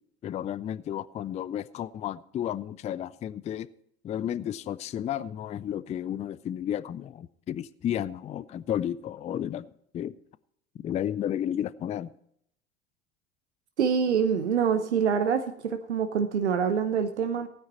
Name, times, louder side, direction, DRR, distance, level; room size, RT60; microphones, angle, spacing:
voice 1, 0.2-3.7 4.0-10.2 10.8-12.1, left 10 dB, 20° left, 0.4 m, -32 dB
voice 2, 13.8-17.5, right 7 dB, 85° right, 0.8 m, -25 dB
16.0 x 9.6 x 4.2 m
figure-of-eight pair, 75°, 34 cm